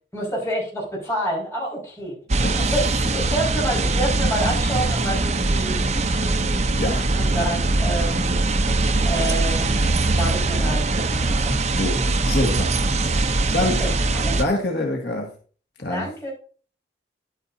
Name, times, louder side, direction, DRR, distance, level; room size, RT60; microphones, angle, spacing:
voice 1, 0.1-2.2 2.6-6.8 7.1-8.4 9.0-9.8 10.2-11.5 13.6-14.6 15.9-16.3, right 1 dB, 15° left, -5 dB, 5.0 m, -29 dB
sound 1, 2.3-14.4, right 2 dB, 40° right, 0.7 m, -22 dB
sound 2, 7.1-8.4 9.6-11.9, right 1 dB, 15° right, 2.3 m, -38 dB
voice 2, 11.7-13.8 14.4-15.3 15.8-16.1, left 1 dB, 70° left, 1 dB, 1.7 m, -26 dB
11.0 x 9.0 x 2.7 m, 0.41 s
head